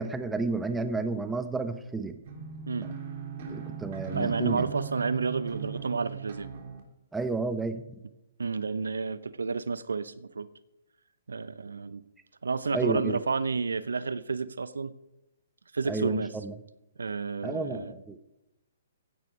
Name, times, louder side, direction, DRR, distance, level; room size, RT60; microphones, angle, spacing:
voice 1, 0.0-2.2 3.5-4.7 7.1-8.0 12.7-13.2 15.9-16.5 17.4-18.2, right 3 dB, 10° right, 9 dB, 1.1 m, -31 dB
sound 1, 2.2-6.8, right 7 dB, 50° right, 3.6 m, -38 dB
voice 2, 4.1-6.5 8.4-10.5 11.3-12.0 12.4-14.9 15.7-16.3 17.0-17.9, right 4 dB, 80° right, 17 dB, 0.8 m, -30 dB
16.0 x 9.3 x 5.0 m, 0.92 s
hypercardioid pair, 135°, 0 cm